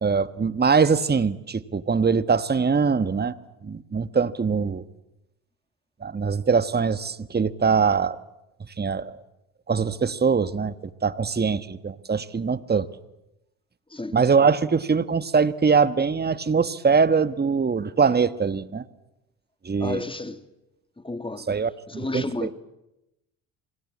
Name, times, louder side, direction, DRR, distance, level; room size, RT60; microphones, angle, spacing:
voice 1, 0.0-3.3 3.6-4.8 6.0-8.2 8.8-9.2 9.7-10.7 11.0-12.9 14.1-18.8 19.6-20.0 21.5-22.5, right 5 dB, 25° right, 1.4 m, -22 dB
voice 2, 19.8-20.4 21.0-21.5 21.9-22.5, left 2 dB, 10° left, 2.3 m, -32 dB
27.5 x 24.5 x 8.6 m
hypercardioid pair, 60°, 41 cm